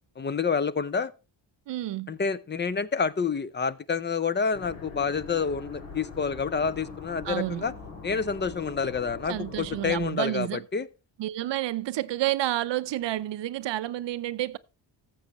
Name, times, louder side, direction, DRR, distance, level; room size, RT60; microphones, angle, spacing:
voice 1, 0.2-1.1 2.1-7.7 8.0-10.9, left 5 dB, 25° left, 0.5 m, -28 dB
voice 2, 1.7-2.1 7.2-7.6 9.3-10.6 11.2-14.6, right 14 dB, 65° right, 0.7 m, -30 dB
sound 1, 4.5-10.1, left 4 dB, 75° left, 2.9 m, -42 dB
14.5 x 7.4 x 3.0 m
cardioid pair, 80°, 48 cm